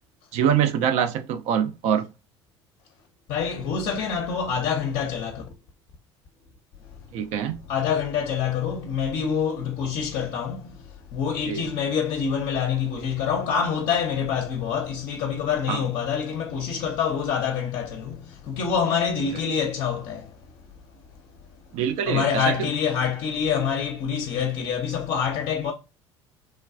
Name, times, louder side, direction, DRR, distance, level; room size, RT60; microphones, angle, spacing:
voice 1, 0.3-2.1 7.1-7.6 11.4-11.7 15.7-15.9 21.7-22.7, right 8 dB, 55° right, 0.4 m, -24 dB
voice 2, 3.3-5.5 7.7-10.7 11.1-20.3 22.1-25.7, left 7 dB, 50° left, 0.5 m, -26 dB
3.1 x 2.3 x 2.4 m
figure-of-eight pair, 65°, 15 cm